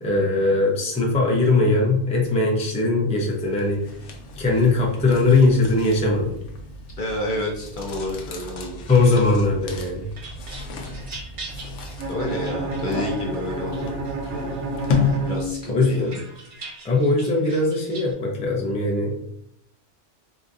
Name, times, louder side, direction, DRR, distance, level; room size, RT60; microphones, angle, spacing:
voice 1, 0.0-4.0 4.4-6.3 8.9-10.0 15.7-16.1 16.8-19.1, left 3 dB, 10° left, -2 dB, 0.4 m, -20 dB
sound 1, 3.3-15.7, left 4 dB, 80° left, 0.9 m, -32 dB
voice 2, 7.0-8.8 12.1-13.9 14.2-14.6 15.2-16.2, left 1 dB, 55° left, -1 dB, 0.7 m, -30 dB
sound 2, 9.7-13.3 13.7-14.6 15.0-18.1, right 3 dB, 40° right, 0.5 m, -42 dB
Bowed string instrument, 12.0-16.1, right 2 dB, 80° right, 1.0 m, -30 dB
4.0 x 2.4 x 2.5 m, 0.74 s
omnidirectional pair, 1.2 m